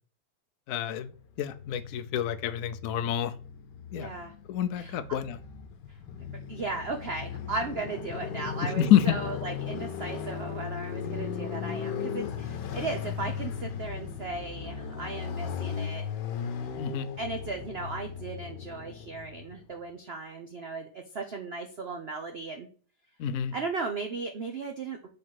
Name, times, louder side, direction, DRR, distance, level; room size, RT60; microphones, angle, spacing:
voice 1, 0.7-1.1 1.4-3.3 3.9-4.1 4.5-5.4 8.8-9.0 16.8-17.1 23.2-23.5, left 10 dB, 85° left, 11 dB, 0.7 m, -27 dB
Motorcycle, 1.5-19.6, left 7 dB, 70° left, 1.3 m, -37 dB
voice 2, 3.9-4.3 4.8-5.0 5.9-6.0 6.5-16.0 17.2-22.7 23.5-25.1, right 3 dB, 90° right, 4 dB, 0.5 m, -36 dB
5.1 x 3.9 x 5.7 m, 0.42 s
omnidirectional pair, 2.1 m